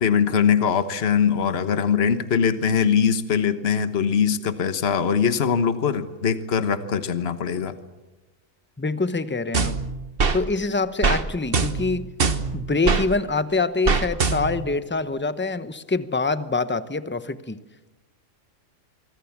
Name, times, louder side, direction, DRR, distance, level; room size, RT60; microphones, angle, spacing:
voice 1, 0.0-7.7, left 7 dB, 50° left, 11 dB, 1.4 m, -22 dB
voice 2, 8.8-9.8 10.3-12.1 12.5-17.6, left 3 dB, 10° left, 13 dB, 0.8 m, -25 dB
sound 1, 9.5-10.4 11.0-11.2 11.5-13.1 13.9-14.7, right 4 dB, 45° right, 1.4 m, -22 dB
25.0 x 24.5 x 7.3 m, 1.1 s
omnidirectional pair, 1.4 m